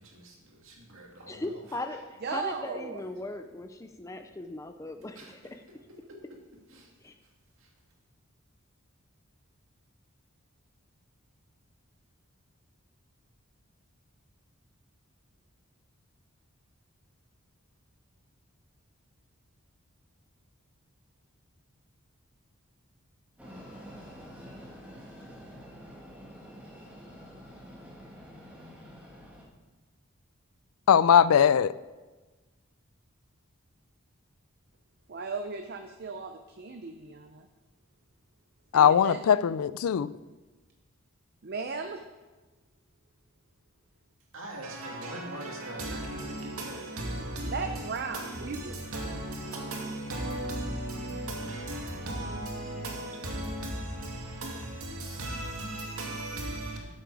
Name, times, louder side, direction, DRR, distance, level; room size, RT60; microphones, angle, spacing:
voice 1, 0.0-1.6 5.1-5.4 6.1-6.2 6.7-6.9 7.6-7.7 44.3-46.8, right 1 dB, 70° right, 2.4 m, -44 dB
voice 2, 1.3-5.6 7.0-7.1, left 2 dB, 15° left, 0.4 m, -38 dB
voice 3, 2.2-3.0 35.1-37.5 38.7-39.2 41.4-42.0 47.4-48.8, right 4 dB, 45° right, 0.6 m, -36 dB
Train, 23.4-29.4, equal, 5° right, 1.8 m, -47 dB
voice 4, 30.9-31.7 38.7-40.1, left 8 dB, 85° left, 0.4 m, -20 dB
voice 5, 44.6-56.8, right 1 dB, 85° right, 2.3 m, -36 dB
13.0 x 7.6 x 4.8 m
head